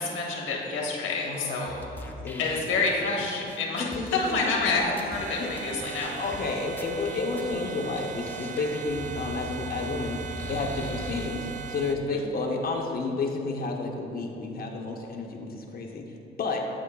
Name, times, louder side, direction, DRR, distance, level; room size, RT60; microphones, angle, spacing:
voice 1, 0.0-1.7 2.4-6.1 12.1-12.2, left 3 dB, 85° left, -1 dB, 1.2 m, -28 dB
voice 2, 1.2-2.4 3.8-4.3 5.1-5.5 6.1-16.0 16.4-16.6, left 3 dB, 50° left, 1 dB, 0.7 m, -31 dB
sound 1, 1.7-5.2 5.6-5.7 5.9-6.4 6.8-7.6 8.0-8.1 8.3-11.3, left 1 dB, 10° left, 0.6 m, -41 dB
sound 2, 5.1-11.9, right 7 dB, 40° right, 0.4 m, -39 dB
12.5 x 4.4 x 2.3 m, 2.8 s
cardioid pair, 90°, 20 cm